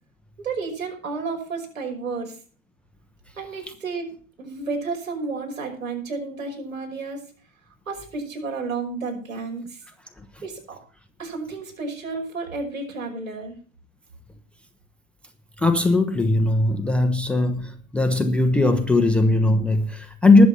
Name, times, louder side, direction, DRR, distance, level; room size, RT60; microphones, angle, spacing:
voice 1, 0.4-2.4 3.4-7.2 7.9-9.8 10.4-10.8 11.2-13.5, right 4 dB, 75° right, 2 dB, 5.7 m, -31 dB
voice 2, 15.6-20.5, left 2 dB, 5° left, 10 dB, 0.6 m, -19 dB
20.0 x 7.1 x 4.2 m, 0.43 s
figure-of-eight pair, 110°, 41 cm